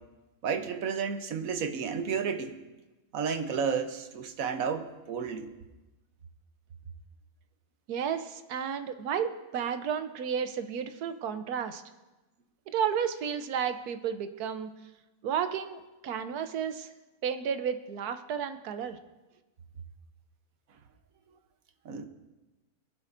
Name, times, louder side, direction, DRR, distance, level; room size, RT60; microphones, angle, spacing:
voice 1, 0.4-2.6 3.1-5.5 21.8-22.1, right 6 dB, 65° right, 8 dB, 1.3 m, -32 dB
voice 2, 7.9-11.8 12.7-14.7 15.2-16.9 17.2-19.0, right 7 dB, 90° right, 10 dB, 1.3 m, -32 dB
22.5 x 11.5 x 2.6 m, 1.1 s
omnidirectional pair, 1.6 m